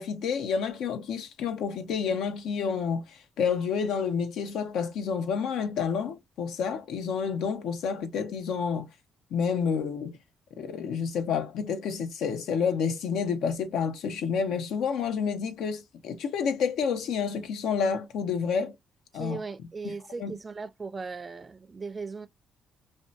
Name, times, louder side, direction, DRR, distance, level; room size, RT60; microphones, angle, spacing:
voice 1, 0.0-8.9 9.3-10.1 10.6-18.7 19.1-19.4 19.8-19.9 20.2-20.3, left 6 dB, 80° left, 0.7 m, -29 dB
voice 2, 19.1-22.3, right 4 dB, 30° right, 0.4 m, -38 dB
2.7 x 2.2 x 2.5 m
cardioid pair, 90°, 0 cm